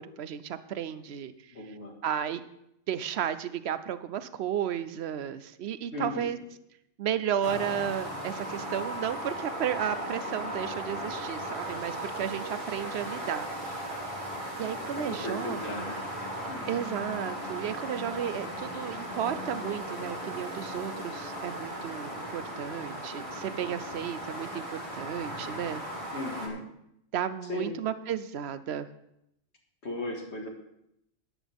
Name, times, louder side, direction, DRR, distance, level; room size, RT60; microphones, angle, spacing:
voice 1, 0.0-1.3 2.0-2.4 2.9-6.4 7.0-13.5 14.6-15.9 16.7-25.8 27.1-28.9, right 9 dB, 60° right, 13 dB, 0.8 m, -33 dB
voice 2, 1.5-1.9 5.9-6.3 14.9-16.0 16.4-16.8 26.1-26.6 27.5-27.8 29.8-30.5, left 2 dB, 55° left, 1 dB, 2.2 m, -36 dB
sound 1, 7.4-26.5, equal, 25° right, 2.0 m, -37 dB
13.0 x 10.0 x 3.5 m, 0.79 s
omnidirectional pair, 1.3 m